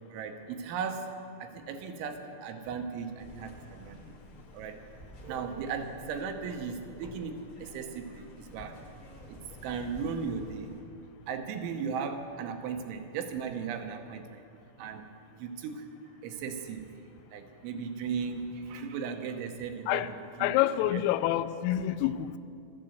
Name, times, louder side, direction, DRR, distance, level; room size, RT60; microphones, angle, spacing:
voice 1, 0.1-1.1 1.4-4.2 4.5-4.8 5.2-8.8 9.3-10.8 11.3-14.4 14.8-15.0 15.4-15.9 16.2-16.9 17.3-20.5 20.9-21.0, right 6 dB, 80° right, 3.2 m, -37 dB
sound 1, 3.2-10.8, left 1 dB, 65° left, 1.0 m, -50 dB
voice 2, 20.4-22.4, left 13 dB, 90° left, 3.2 m, -27 dB
13.0 x 11.5 x 7.7 m
omnidirectional pair, 5.7 m